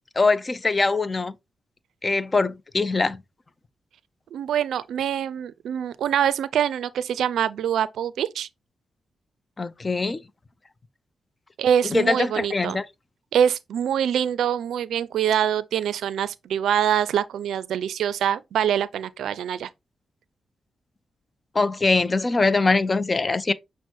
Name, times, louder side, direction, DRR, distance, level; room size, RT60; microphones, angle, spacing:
voice 1, 0.2-1.3 2.0-3.2 9.6-10.2 11.9-12.8 21.5-23.5, left 3 dB, 35° left, 0.5 m, -22 dB
voice 2, 4.3-8.5 11.6-12.8 13.3-19.7, right 9 dB, 85° right, 0.4 m, -24 dB
6.0 x 2.1 x 4.3 m
supercardioid pair, 55°, 0 cm